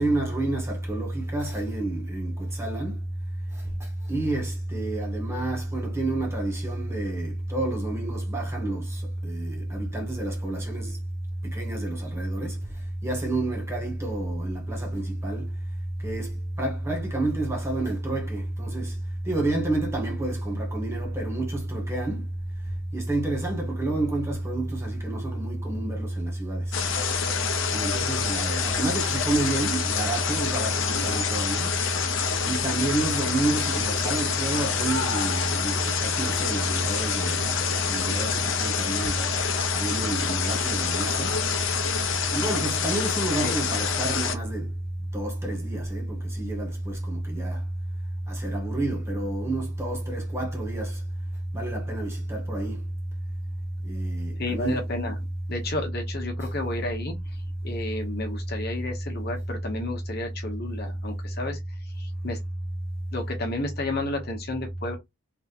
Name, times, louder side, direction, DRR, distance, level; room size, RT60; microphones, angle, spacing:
voice 1, 0.0-3.0 4.1-11.0 11.4-12.6 13.0-15.5 16.0-16.3 16.6-18.9 19.3-22.3 22.9-26.6 27.7-31.7 32.5-37.5 37.8-39.2 39.7-41.3 42.3-44.7 45.1-47.6 48.3-51.0 51.5-52.8 53.8-54.8 56.4-56.5, right 2 dB, 15° right, 1.3 m, -29 dB
sound 1, 26.7-44.4, left 6 dB, 65° left, 0.8 m, -27 dB
voice 2, 54.4-55.2 55.5-57.1 57.6-61.6 62.0-62.4 63.1-65.0, left 2 dB, 50° left, 1.1 m, -32 dB
3.5 x 3.1 x 2.5 m
head